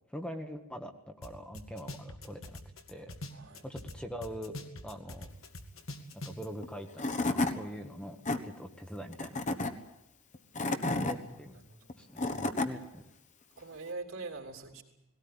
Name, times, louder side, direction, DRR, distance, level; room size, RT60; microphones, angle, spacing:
voice 1, 0.1-2.6 2.9-3.1 3.6-4.5 4.8-5.3 6.2-8.2 8.4-9.4 11.0-11.5 12.0-13.0, equal, 5° left, 5 dB, 1.3 m, -43 dB
sound 1, 1.2-1.3 1.5-3.9 4.2-6.5, left 1 dB, 75° left, 2.1 m, -43 dB
voice 2, 3.3-3.7 10.9-11.9 13.6-14.8, right 3 dB, 70° right, 3 dB, 3.6 m, -44 dB
Tools / Wood, 6.6-6.7 7.0-7.5 8.0-8.4 9.1-9.7 10.3-11.1 11.9-12.7, left 2 dB, 35° left, 1.3 m, -30 dB
19.5 x 17.5 x 9.7 m, 0.88 s
head